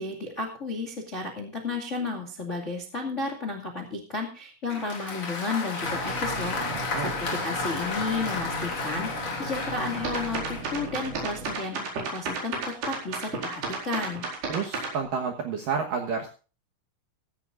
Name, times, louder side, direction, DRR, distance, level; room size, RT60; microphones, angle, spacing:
voice 1, 0.0-14.2, left 3 dB, 70° left, 1 dB, 0.7 m, -33 dB
Applause, 4.7-10.7, left 4 dB, 35° left, 2.7 m, -32 dB
sound 1, 5.8-11.5, right 3 dB, 35° right, 2.1 m, -38 dB
voice 2, 6.7-7.1 14.5-16.4, right 6 dB, 70° right, 2 dB, 2.0 m, -30 dB
sound 2, 10.0-15.0, right 4 dB, 50° right, 6.2 m, -32 dB
16.0 x 15.0 x 2.6 m, 0.35 s
omnidirectional pair, 6.0 m